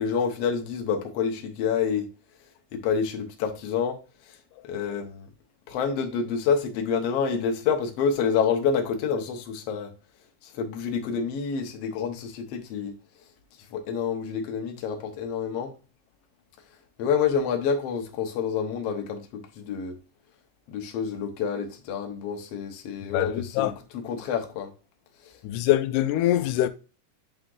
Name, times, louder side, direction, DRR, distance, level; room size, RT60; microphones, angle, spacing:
voice 1, 0.0-2.1 2.7-4.0 4.6-5.3 5.7-9.9 10.6-12.9 13.7-15.7 17.0-20.0 20.7-24.7, left 6 dB, 65° left, 1.8 m, -28 dB
voice 2, 23.1-23.7 25.4-26.7, left 13 dB, 85° left, 2.1 m, -24 dB
7.9 x 3.5 x 3.8 m
omnidirectional pair, 3.6 m